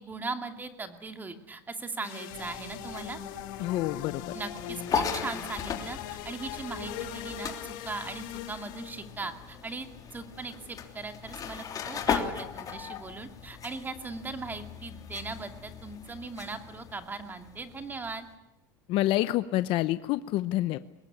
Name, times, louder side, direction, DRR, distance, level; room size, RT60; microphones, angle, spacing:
voice 1, 0.0-3.2 4.3-18.3, right 3 dB, 15° right, 7 dB, 2.4 m, -39 dB
sound 1, 2.0-9.1, left 10 dB, 75° left, 2.6 m, -40 dB
sound 2, 2.3-18.3, left 7 dB, 35° left, 3.2 m, -38 dB
voice 2, 3.6-4.3 18.9-20.8, left 15 dB, 55° left, 13 dB, 0.8 m, -27 dB
23.0 x 20.0 x 8.6 m, 0.93 s
supercardioid pair, 120°, 11 cm